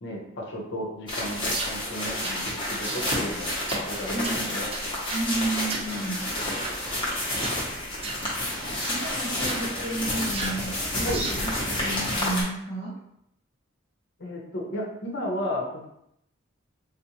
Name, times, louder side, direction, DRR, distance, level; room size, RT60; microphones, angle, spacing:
voice 1, 0.0-3.5 3.8-4.7 11.0-11.3 14.2-15.9, equal, 60° left, -1 dB, 0.7 m, -33 dB
sound 1, 1.1-12.4, left 1 dB, 25° left, 0.9 m, -30 dB
sound 2, 1.5-1.8 2.2-2.4 2.8-3.3 3.7-3.9 4.2-4.4 4.7-5.3 5.7-5.9 6.4-6.8 7.3-7.6 8.0-8.3 8.8-9.0 9.5-9.6 10.3-10.6 11.1-11.4, right 3 dB, 30° right, 0.3 m, -34 dB
voice 2, 4.1-4.5 5.1-6.2 8.9-11.4 11.8-12.9, right 2 dB, 55° right, -6 dB, 1.1 m, -32 dB
3.6 x 2.5 x 2.9 m, 0.77 s
head